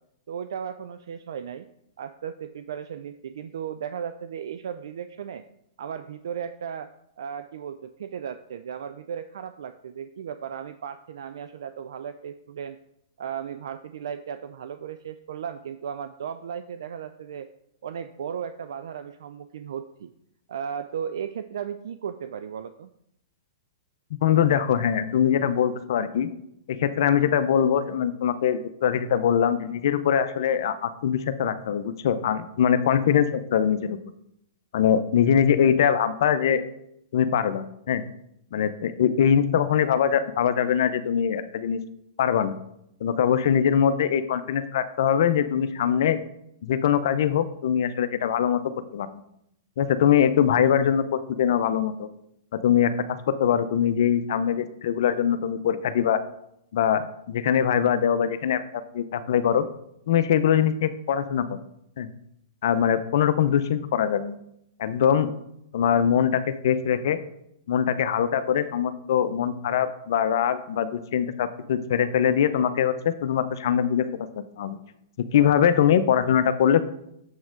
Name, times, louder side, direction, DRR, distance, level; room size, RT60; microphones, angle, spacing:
voice 1, 0.3-1.7 2.0-5.4 5.8-12.8 13.2-17.5 17.8-20.1 20.5-22.9, right 8 dB, 70° right, 11 dB, 0.3 m, -35 dB
voice 2, 24.2-26.3 26.7-34.0 34.7-36.6 37.1-38.0 38.5-41.8 42.2-42.6 43.0-46.2 46.6-48.6 48.9-49.2 49.8-52.1 52.5-56.2 56.7-58.6 58.9-59.6 60.1-61.6 62.0-62.1 62.6-64.4 64.8-65.3 65.7-67.2 67.7-74.1 74.3-74.8 75.2-76.8, left 8 dB, 65° left, 12 dB, 0.6 m, -22 dB
7.2 x 6.0 x 3.8 m, 0.77 s
hypercardioid pair, 115°, 2 cm